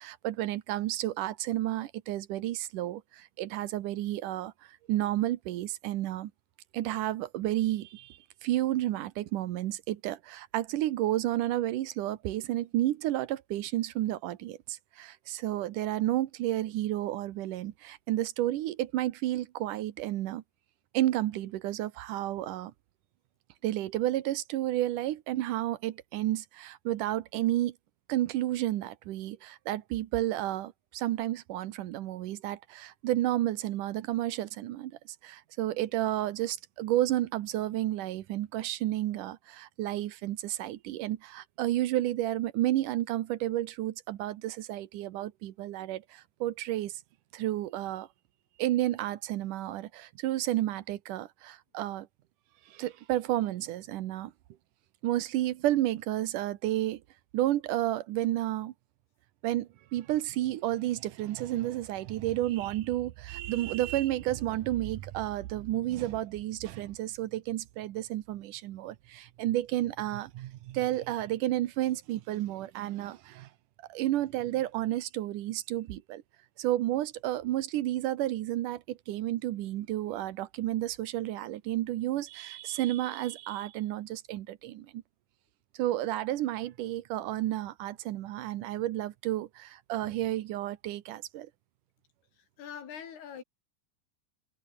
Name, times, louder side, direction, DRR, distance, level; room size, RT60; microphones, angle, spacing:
voice 1, 0.0-6.3 6.7-20.4 20.9-22.7 23.6-27.8 28.1-47.0 47.3-48.1 48.6-52.1 52.7-54.3 55.0-57.0 57.3-58.7 59.4-73.5 73.9-76.2 76.6-85.0 85.7-91.5, right 14 dB, 70° right, 2.2 m, -31 dB
voice 2, 92.6-93.4, left 8 dB, 85° left, 5.3 m, -42 dB
omnidirectional pair, 4.5 m